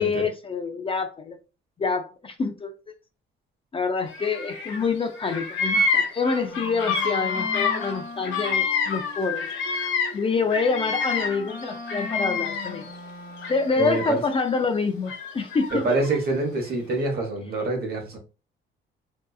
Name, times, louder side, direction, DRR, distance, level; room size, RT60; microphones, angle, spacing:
voice 1, 0.0-1.4 1.8-2.8 3.7-9.5 10.1-12.9 13.5-15.9, left 4 dB, 30° left, 0.4 m, -26 dB
Bird vocalization bird call bird song, 4.1-4.9 5.1-10.2 10.5-12.9 13.4-14.3 15.1-16.2, left 4 dB, 80° left, 0.6 m, -28 dB
Wind instrument woodwind instrument, 6.4-13.9, left 2 dB, 45° left, 0.9 m, -39 dB
voice 2, 13.8-14.2 15.7-18.2, right 2 dB, 50° right, 1.0 m, -26 dB
2.6 x 2.3 x 2.3 m
cardioid pair, 90°, 20 cm